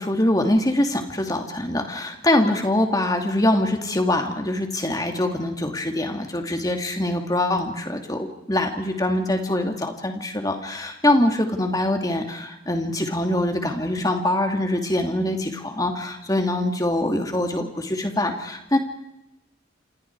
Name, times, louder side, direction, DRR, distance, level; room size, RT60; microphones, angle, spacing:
voice 1, 0.0-18.8, left 1 dB, 20° left, 4 dB, 2.7 m, -23 dB
28.0 x 27.5 x 4.8 m, 0.89 s
head